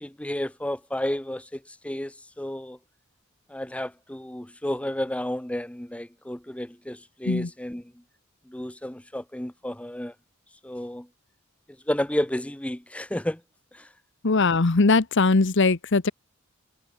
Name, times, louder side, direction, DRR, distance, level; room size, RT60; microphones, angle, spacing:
voice 1, 0.0-2.8 3.5-7.9 8.5-10.1 10.6-11.1 11.9-13.4 13.7-13.9, left 1 dB, 5° left, 0.8 m, -31 dB
voice 2, 14.2-16.1, left 3 dB, 60° left, 0.9 m, -20 dB
head